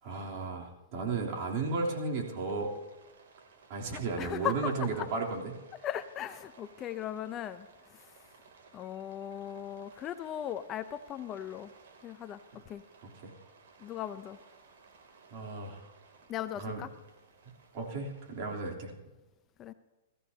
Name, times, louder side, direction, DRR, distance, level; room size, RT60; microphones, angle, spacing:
voice 1, 0.0-2.7 3.7-5.6 13.0-13.3 15.3-15.9 16.6-16.9 17.7-18.9, right 3 dB, 50° right, -1 dB, 3.3 m, -34 dB
Rain, 1.2-18.7, right 5 dB, 70° right, 2.9 m, -59 dB
voice 2, 4.2-5.1 5.8-8.3 8.7-11.7 12.0-12.4 12.7-12.8 13.8-14.4 16.3-16.9 19.6-19.7, left 11 dB, 25° left, 11 dB, 0.6 m, -38 dB
21.0 x 14.5 x 2.8 m, 1.1 s
hypercardioid pair, 140°, 0 cm